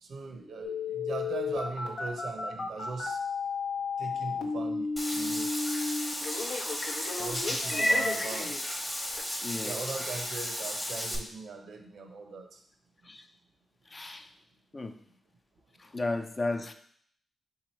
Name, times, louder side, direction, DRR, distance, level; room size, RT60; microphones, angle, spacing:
voice 1, 0.0-3.2 4.0-5.5 7.2-8.5 9.6-12.6, right 4 dB, 75° right, 4 dB, 0.6 m, -40 dB
Telephone, 0.6-8.6 9.2-9.3, left 4 dB, 80° left, 0.7 m, -33 dB
Meow / Water / Bathtub (filling or washing), 5.0-11.2, equal, 15° left, 0.9 m, -32 dB
voice 2, 9.4-9.8 13.0-13.3 13.9-14.3 14.7-15.0 15.8-16.7, left 2 dB, 35° left, 7 dB, 0.4 m, -34 dB
3.7 x 2.9 x 4.3 m, 0.63 s
cardioid pair, 70°, 0 cm